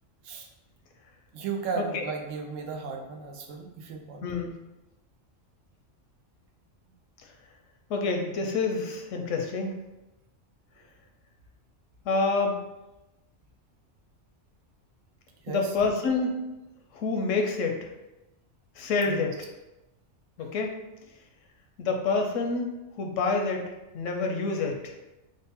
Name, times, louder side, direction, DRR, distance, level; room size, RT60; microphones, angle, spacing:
voice 1, 1.3-4.3 15.4-15.6 19.1-19.3, right 5 dB, 85° right, 2 dB, 1.0 m, -35 dB
voice 2, 4.2-4.5 7.2-7.3 7.9-9.7 12.0-12.6 15.5-16.4 16.9-17.9 18.8-19.5 20.4-20.7 21.8-23.6 23.9-24.9, left 4 dB, 85° left, 3 dB, 0.9 m, -28 dB
3.7 x 2.1 x 3.5 m, 0.99 s
omnidirectional pair, 1.3 m